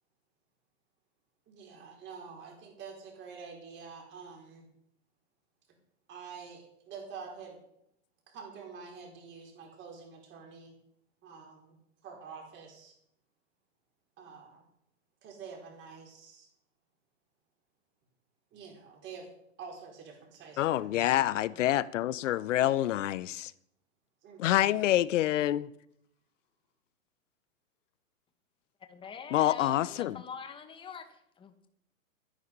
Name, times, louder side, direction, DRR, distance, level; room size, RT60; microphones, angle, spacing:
voice 1, 1.5-4.6 6.1-7.6 8.3-10.7 11.2-11.8 12.0-12.9 14.2-14.6 15.2-16.5 18.5-19.3 19.6-21.2 21.5-21.9 22.5-22.8 24.2-24.9, right 5 dB, 25° right, 4.7 m, -47 dB
voice 2, 20.6-23.5 24.4-25.7 29.3-30.2, left 13 dB, 65° left, 0.8 m, -27 dB
voice 3, 28.9-31.7, left 7 dB, 10° left, 1.1 m, -44 dB
12.5 x 10.5 x 5.4 m
hypercardioid pair, 135°, 41 cm